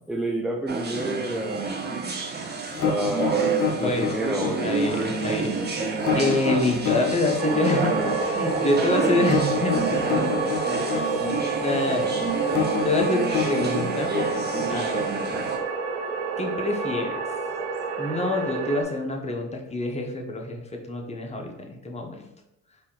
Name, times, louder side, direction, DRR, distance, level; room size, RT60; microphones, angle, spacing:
voice 1, 0.1-1.7 2.8-4.8, right 1 dB, ahead, 0 dB, 0.5 m, -29 dB
sound 1, 0.7-15.6, right 4 dB, 25° right, 1.0 m, -29 dB
sound 2, 2.7-15.6, left 7 dB, 45° left, 1.3 m, -28 dB
voice 2, 3.8-5.9 6.1-10.5 10.9-11.2 11.6-12.6 12.8-14.1 14.7-15.0 15.5-15.6 16.4-17.2 18.0-22.3, left 2 dB, 15° left, 2 dB, 1.0 m, -27 dB
sound 3, 7.4-18.8, right 4 dB, 85° right, 0.8 m, -28 dB
4.2 x 2.8 x 3.9 m, 0.81 s
hypercardioid pair, 65°, 41 cm